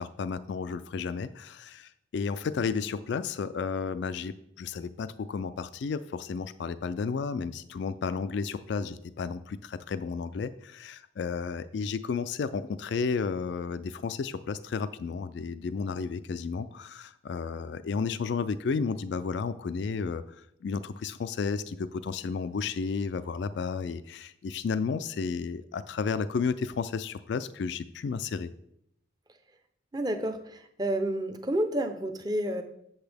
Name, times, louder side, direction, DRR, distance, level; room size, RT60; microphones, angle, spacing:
voice 1, 0.0-20.2 20.6-28.5, left 5 dB, 65° left, 14 dB, 0.3 m, -32 dB
voice 2, 29.9-30.4 30.8-32.6, right 1 dB, 20° right, 7 dB, 0.6 m, -29 dB
8.0 x 7.0 x 3.4 m, 0.75 s
head